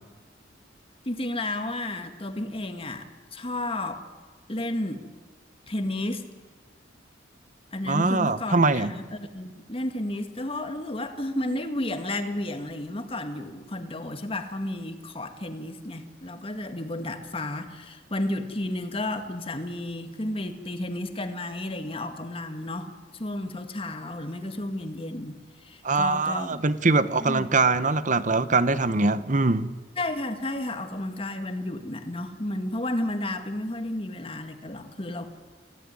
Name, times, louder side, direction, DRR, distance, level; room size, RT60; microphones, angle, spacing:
voice 1, 1.1-4.0 4.5-5.0 5.7-6.2 7.7-26.6 27.2-27.5 30.0-35.3, left 1 dB, 30° left, 7 dB, 2.0 m, -32 dB
voice 2, 7.9-8.9 25.8-29.7, right 3 dB, 40° right, 14 dB, 1.0 m, -23 dB
28.0 x 17.0 x 9.8 m, 1.4 s
head